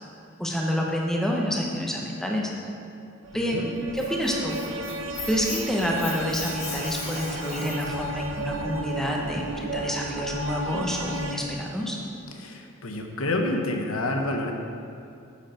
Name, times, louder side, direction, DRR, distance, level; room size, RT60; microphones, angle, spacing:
voice 1, 0.4-2.5 3.3-3.6 3.9-4.6 5.3-12.0, equal, ahead, -1 dB, 1.1 m, -28 dB
sound 1, 3.2-11.4, right 2 dB, 65° right, 0.7 m, -34 dB
voice 2, 3.3-3.7 12.4-14.5, left 2 dB, 85° left, 3 dB, 1.1 m, -28 dB
Squeak, 3.7-8.0, left 4 dB, 50° left, 2.0 m, -37 dB
9.8 x 8.2 x 4.4 m, 2.5 s
head